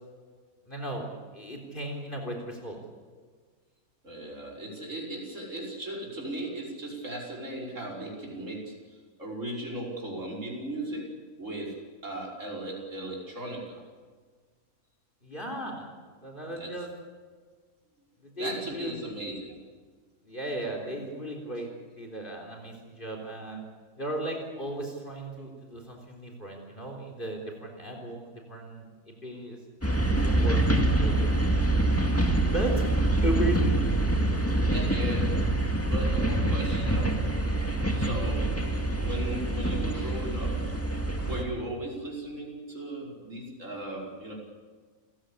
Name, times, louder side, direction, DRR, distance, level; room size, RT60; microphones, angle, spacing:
voice 1, 0.7-1.1 1.3-2.8 15.2-15.9 16.2-16.9 18.2-18.9 20.2-21.7 22.0-23.6 24.0-29.6 30.2-30.6 31.0-31.2 32.5-33.0 33.2-33.8, right 1 dB, 35° left, 2 dB, 3.9 m, -35 dB
voice 2, 4.0-11.1 11.4-13.8 16.5-16.7 18.4-19.6 34.7-35.4 35.8-37.2 37.9-38.6 39.0-40.7 41.2-44.3, right 1 dB, 55° right, -2 dB, 5.8 m, -37 dB
sound 1, 29.8-41.4, right 2 dB, 10° left, 2.0 m, -25 dB
29.0 x 15.5 x 8.4 m, 1.5 s
omnidirectional pair, 1.6 m